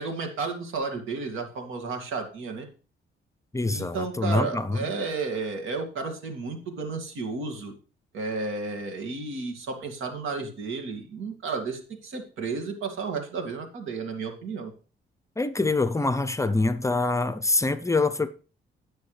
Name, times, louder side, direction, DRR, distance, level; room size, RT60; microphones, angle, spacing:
voice 1, 0.0-2.7 3.7-7.8 8.1-14.7, right 4 dB, 80° right, 2.3 m, -32 dB
voice 2, 3.5-4.9 15.4-18.3, left 3 dB, 15° left, 0.6 m, -25 dB
16.5 x 6.3 x 3.3 m
cardioid pair, 90°, 20 cm